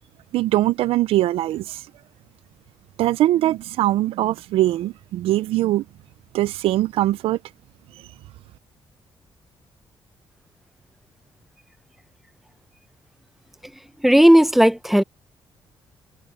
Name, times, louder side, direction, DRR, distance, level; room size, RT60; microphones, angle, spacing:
voice 1, 0.3-1.8 3.0-5.8 6.3-7.4, right 15 dB, 90° right, 0.4 m, -21 dB
voice 2, 14.0-15.0, equal, ahead, 0.9 m, -14 dB
cardioid pair, 85°, 10 cm